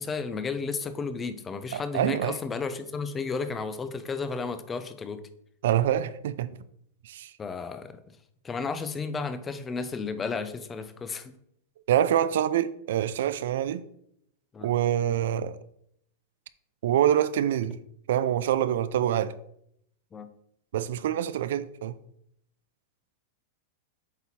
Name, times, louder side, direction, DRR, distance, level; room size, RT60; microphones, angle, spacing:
voice 1, 0.0-5.2 7.4-7.9 8.4-11.3 14.5-14.7 20.1-20.3, left 4 dB, 15° left, 0.4 m, -33 dB
voice 2, 1.7-2.4 5.6-6.5 7.0-7.3 11.9-13.8 14.6-15.6 16.8-17.8 18.1-19.3 20.7-22.0, right 11 dB, 70° right, 0.4 m, -25 dB
8.1 x 2.9 x 4.2 m
supercardioid pair, 160°, 0 cm